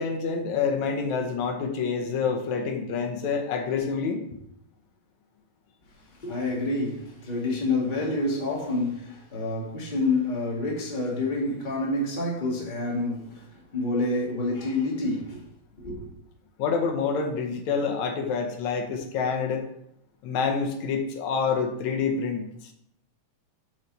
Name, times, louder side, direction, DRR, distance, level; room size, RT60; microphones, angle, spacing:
voice 1, 0.0-4.2 16.6-19.7 20.2-22.7, left 5 dB, 80° left, 2.2 m, -27 dB
voice 2, 6.2-15.4 15.8-16.1, left 2 dB, 20° left, 1.6 m, -28 dB
11.0 x 4.6 x 4.0 m
omnidirectional pair, 3.3 m